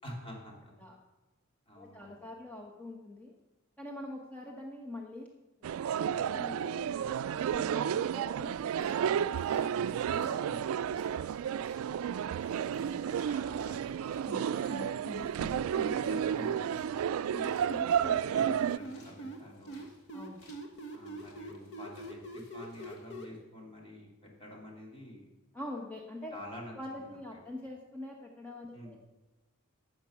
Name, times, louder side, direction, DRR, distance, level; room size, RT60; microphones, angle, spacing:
voice 1, 0.0-0.7 1.7-2.3 10.4-10.8 12.0-12.6 13.3-15.3 15.7-17.6 18.1-19.8 20.9-25.2 26.3-27.4 28.7-29.0, left 1 dB, 25° left, -2 dB, 2.8 m, -49 dB
voice 2, 1.8-3.3 3.8-5.3 5.6-11.0 12.8-13.1 20.1-20.5 25.5-26.4 26.7-29.0, left 1 dB, 5° left, 0 dB, 1.0 m, -45 dB
sound 1, 5.6-18.8, right 8 dB, 80° right, 0.3 m, -32 dB
sound 2, 8.5-23.3, left 2 dB, 75° left, 2.8 m, -61 dB
sound 3, 14.3-16.6 17.3-19.4 19.7-23.3, equal, 55° left, 1.3 m, -42 dB
12.5 x 7.8 x 5.8 m, 1.1 s
head